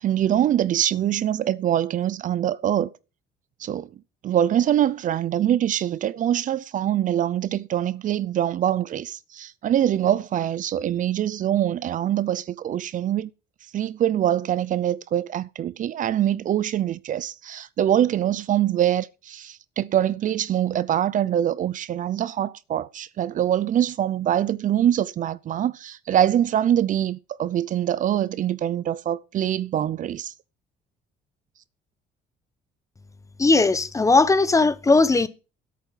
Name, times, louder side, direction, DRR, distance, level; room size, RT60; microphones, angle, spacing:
voice 1, 0.0-2.9 3.6-3.9 4.2-13.3 13.7-30.3, right 11 dB, 50° right, 0.6 m, -24 dB
voice 2, 33.4-35.3, left 3 dB, 20° left, 0.9 m, -18 dB
10.5 x 8.6 x 5.7 m
cardioid pair, 110°, 17 cm